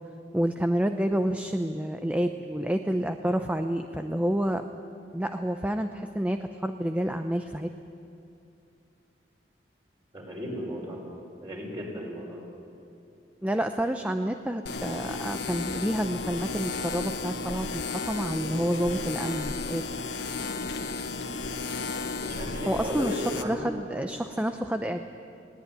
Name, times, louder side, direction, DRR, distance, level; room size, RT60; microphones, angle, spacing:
voice 1, 0.3-4.6 5.1-7.7 13.4-17.7 18.1-19.8 22.7-25.0, right 1 dB, 10° right, 6 dB, 0.6 m, -29 dB
voice 2, 10.1-11.0 11.4-12.4 22.2-23.7, equal, 30° right, -1 dB, 5.8 m, -35 dB
sound 1, 14.7-23.4, left 4 dB, 70° left, 1.0 m, -33 dB
19.5 x 18.5 x 9.6 m, 2.7 s
head